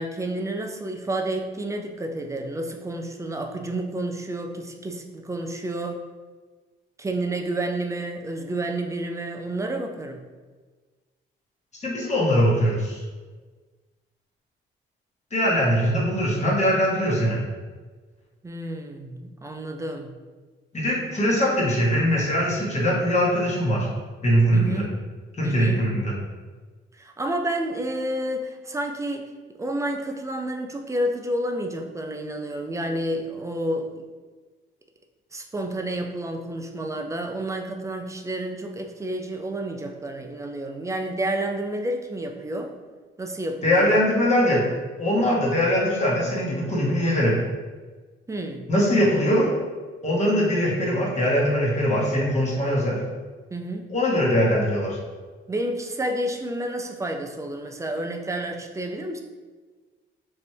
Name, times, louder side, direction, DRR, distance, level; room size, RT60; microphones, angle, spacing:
voice 1, 0.0-6.0 7.0-10.3 18.4-20.1 24.5-24.9 25.4-25.9 27.0-33.9 35.3-42.7 43.2-44.0 48.3-48.7 53.5-53.9 55.5-59.2, right 1 dB, 15° right, 4 dB, 0.5 m, -30 dB
voice 2, 11.8-13.0 15.3-17.4 20.7-23.9 24.2-24.8 25.4-26.1 43.6-44.6 45.0-47.3 48.7-49.5 50.0-53.0 53.9-55.0, equal, 35° left, -4 dB, 1.2 m, -21 dB
3.2 x 2.6 x 4.4 m, 1.4 s
cardioid pair, 90°, 20 cm